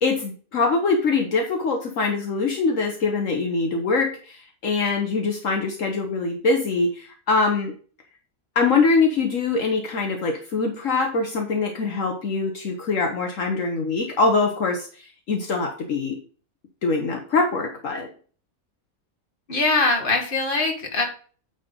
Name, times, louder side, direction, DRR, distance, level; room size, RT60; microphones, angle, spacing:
voice 1, 0.0-7.7 8.5-14.9 15.3-16.2 16.8-18.1, left 4 dB, 65° left, 3 dB, 1.4 m, -23 dB
voice 2, 19.5-21.0, left 3 dB, 40° left, 2 dB, 1.8 m, -22 dB
9.3 x 4.2 x 5.2 m, 0.41 s
omnidirectional pair, 1.5 m